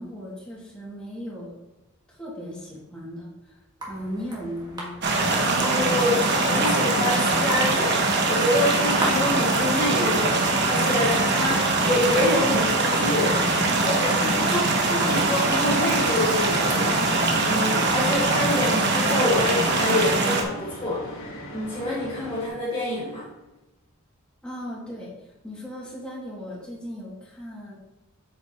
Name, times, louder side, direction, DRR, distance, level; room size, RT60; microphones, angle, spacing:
voice 1, 0.0-1.6 2.1-3.6 3.9-5.0 24.4-27.7, equal, 5° left, -6 dB, 2.6 m, -37 dB
sound 1, 3.8-19.0, right 1 dB, 20° right, 1.9 m, -39 dB
sound 2, 5.0-20.4, right 2 dB, 55° right, 1.2 m, -22 dB
voice 2, 5.6-23.3, left 1 dB, 25° left, -7 dB, 1.6 m, -27 dB
sound 3, 9.3-22.5, equal, 70° left, 2.0 m, -39 dB
7.9 x 7.8 x 3.1 m, 0.98 s
head